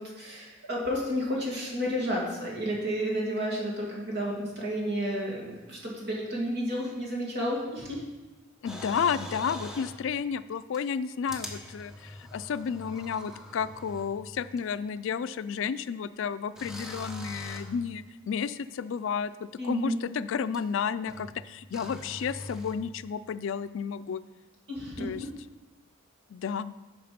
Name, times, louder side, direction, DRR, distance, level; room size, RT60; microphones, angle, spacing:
voice 1, 0.0-8.0 19.6-20.0 24.7-25.3, equal, 55° right, -3 dB, 2.5 m, -31 dB
voice 2, 8.6-24.2 25.0-25.2 26.3-26.7, left 6 dB, 65° left, 14 dB, 0.4 m, -32 dB
sound 1, 8.7-10.0 10.7-10.8 11.3-14.2 14.6-14.7 16.6-17.8 20.5-20.6 21.1-21.4 21.7-22.7, left 1 dB, 5° right, 0.9 m, -42 dB
9.9 x 5.9 x 5.1 m, 1.1 s
head